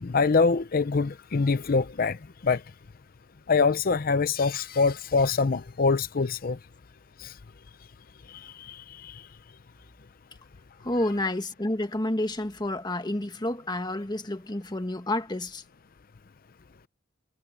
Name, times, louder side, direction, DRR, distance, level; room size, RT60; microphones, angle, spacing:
voice 1, 0.0-2.2 2.4-2.6 3.5-6.6 7.2-7.3 8.4-9.2, left 4 dB, 50° left, 0.6 m, -24 dB
voice 2, 10.8-15.6, left 1 dB, 25° left, 1.6 m, -29 dB
head